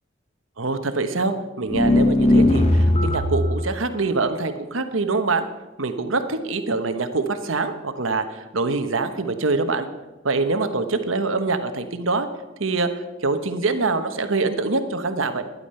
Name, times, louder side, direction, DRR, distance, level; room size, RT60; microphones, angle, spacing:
voice 1, 0.6-5.5 5.8-9.9 10.2-12.3 12.6-15.4, right 3 dB, 90° right, 9 dB, 1.1 m, -24 dB
sound 1, 1.7-3.5, left 1 dB, 35° left, 1.1 m, -17 dB
12.0 x 11.0 x 5.6 m, 1.2 s
head